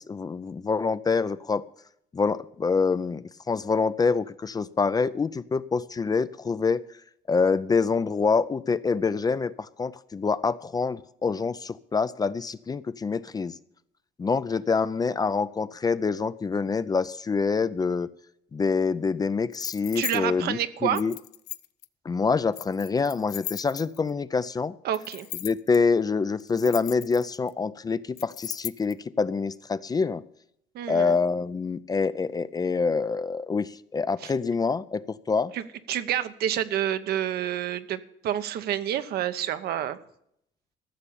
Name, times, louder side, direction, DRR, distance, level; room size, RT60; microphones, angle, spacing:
voice 1, 0.0-1.6 2.1-6.8 7.3-13.6 14.2-18.1 18.5-21.1 22.0-24.8 25.4-30.2 30.9-35.5, left 4 dB, 25° left, 15 dB, 0.4 m, -26 dB
sound 1, 19.5-20.2 20.9-21.8 22.5-24.1 24.9-25.8 26.4-27.5 28.2-28.9, left 15 dB, 70° left, 0.5 m, -37 dB
voice 2, 19.9-21.0 24.8-25.3 30.7-31.2 34.2-34.3 35.5-35.6 35.9-40.0, right 11 dB, 70° right, 11 dB, 0.9 m, -28 dB
14.5 x 6.8 x 8.5 m, 0.73 s
cardioid pair, 110°, 17 cm